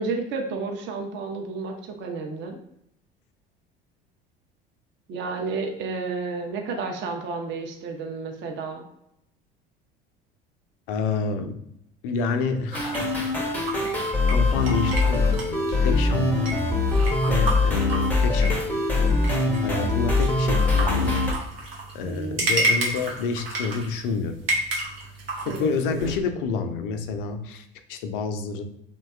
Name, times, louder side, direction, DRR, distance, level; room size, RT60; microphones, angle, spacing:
voice 1, 0.0-2.6 5.1-8.9 25.5-25.8, right 4 dB, 40° right, 3 dB, 0.5 m, -31 dB
voice 2, 10.9-11.6 12.0-13.5 14.3-16.6 16.9-18.9 19.6-21.2 21.9-24.4 25.5-28.6, left 4 dB, 65° left, 8 dB, 0.4 m, -29 dB
sound 1, 12.7-21.3, left 3 dB, 5° left, 0.5 m, -22 dB
sound 2, 12.7-26.2, right 1 dB, 85° right, 0.6 m, -32 dB
2.6 x 2.2 x 2.3 m, 0.77 s
figure-of-eight pair, 65°, 29 cm